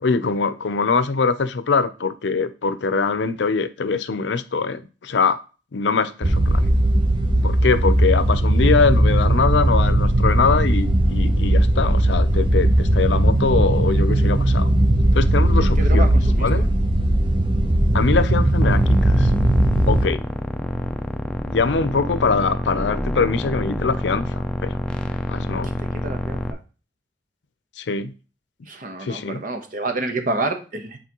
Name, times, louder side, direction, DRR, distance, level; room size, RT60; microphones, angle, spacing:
voice 1, 0.0-5.4 5.7-6.6 7.4-14.7 15.1-16.1 16.4-16.7 17.9-19.3 19.9-20.2 21.5-24.8 25.3-25.7 27.8-28.1 29.0-29.4, left 4 dB, 80° left, 13 dB, 0.5 m, -23 dB
sound 1, 6.2-20.1, right 1 dB, 30° right, 0.7 m, -18 dB
voice 2, 15.6-16.5 25.9-26.4 28.7-31.0, right 2 dB, 50° right, 5 dB, 1.0 m, -28 dB
sound 2, 18.6-26.5, left 1 dB, 5° left, 0.5 m, -27 dB
8.3 x 4.2 x 3.0 m, 0.34 s
head